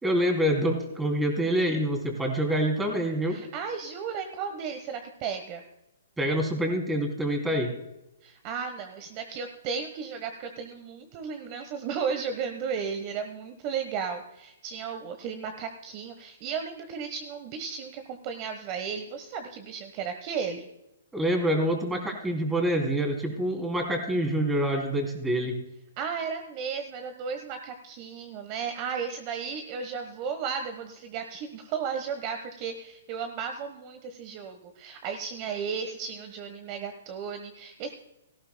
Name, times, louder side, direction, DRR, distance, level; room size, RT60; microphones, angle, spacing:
voice 1, 0.0-3.4 6.2-7.7 21.1-25.5, right 1 dB, 10° right, 2 dB, 2.9 m, -26 dB
voice 2, 3.3-5.6 8.2-20.7 26.0-37.9, right 6 dB, 35° right, 7 dB, 1.1 m, -34 dB
18.0 x 14.5 x 2.2 m, 0.89 s
hypercardioid pair, 140°, 0 cm